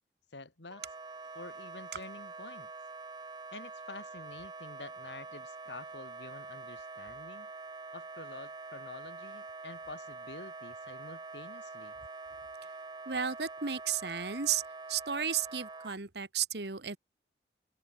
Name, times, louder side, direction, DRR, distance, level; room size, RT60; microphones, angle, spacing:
voice 1, 0.3-0.8 1.3-2.7 3.5-7.5 7.9-12.0, left 3 dB, 90° left, 2.5 m, -48 dB
Wind instrument woodwind instrument, 0.7-16.0, right 3 dB, 25° right, 0.8 m, -45 dB
voice 2, 13.0-14.6 14.9-17.0, right 8 dB, 70° right, 1.6 m, -33 dB
open air
head